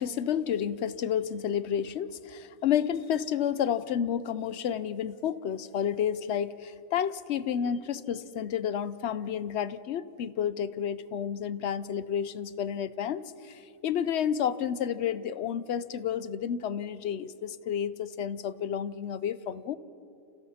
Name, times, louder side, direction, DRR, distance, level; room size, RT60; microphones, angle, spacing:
voice 1, 0.0-19.8, left 9 dB, 60° left, 15 dB, 0.8 m, -31 dB
29.5 x 28.0 x 4.3 m, 2.7 s
omnidirectional pair, 1.5 m